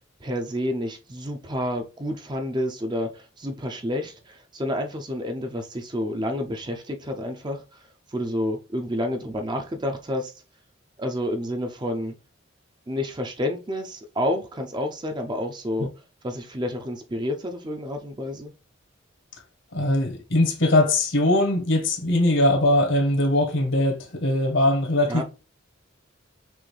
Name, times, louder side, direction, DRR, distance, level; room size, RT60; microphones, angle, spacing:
voice 1, 0.2-7.8 8.1-10.3 11.0-12.1 12.9-15.9 16.2-18.5 25.1-25.2, left 1 dB, 20° right, 0.6 m, -29 dB
voice 2, 19.7-25.2, left 1 dB, 75° left, 1.3 m, -21 dB
6.1 x 2.6 x 3.3 m
head